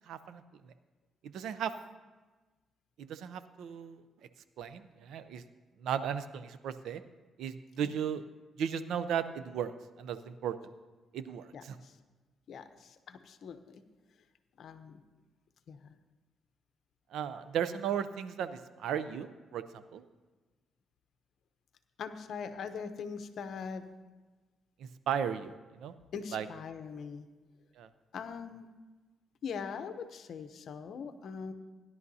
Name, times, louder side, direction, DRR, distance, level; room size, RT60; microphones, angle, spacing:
voice 1, 0.1-0.7 1.2-1.7 3.0-4.0 4.6-5.4 5.8-7.0 7.4-8.2 8.6-10.6 11.1-11.8 17.1-20.0 24.8-25.9 26.3-26.5 27.8-27.9, right 8 dB, 80° right, 12 dB, 0.5 m, -36 dB
voice 2, 11.5-12.0 12.5-13.8 14.6-15.0 15.7-15.9 22.0-23.9 26.1-27.3 28.1-28.7 29.4-31.5, left 6 dB, 65° left, 9 dB, 0.8 m, -42 dB
16.5 x 11.0 x 2.8 m, 1.2 s
cardioid pair, 110°, 0 cm